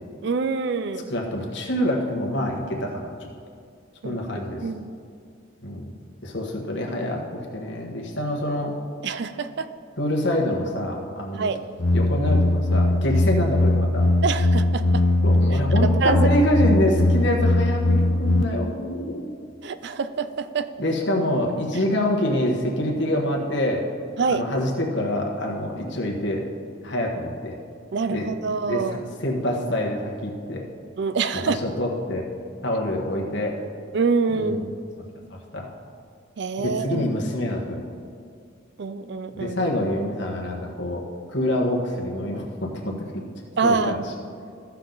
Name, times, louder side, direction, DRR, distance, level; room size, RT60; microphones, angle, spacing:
voice 1, 0.2-1.1 4.0-4.3 4.6-4.9 9.0-9.7 11.3-11.6 14.2-15.0 15.8-16.3 19.6-20.7 24.2-24.5 27.9-29.0 31.0-31.6 33.9-34.6 36.4-37.1 38.8-39.6 43.6-44.1, right 4 dB, 60° right, 12 dB, 0.4 m, -25 dB
voice 2, 1.1-3.1 4.0-4.6 5.6-5.9 6.2-8.7 10.0-11.5 11.9-14.0 15.2-19.3 20.8-23.8 24.3-26.5 26.8-27.6 28.1-28.3 28.6-30.6 31.3-32.2 32.6-33.6 34.3-34.6 35.3-35.7 36.6-37.8 39.4-41.0 41.3-43.2 43.6-44.0, left 1 dB, 60° left, 0 dB, 1.4 m, -26 dB
sound 1, 11.8-18.4, left 2 dB, 80° left, 0.7 m, -20 dB
14.5 x 5.9 x 3.9 m, 2.3 s
head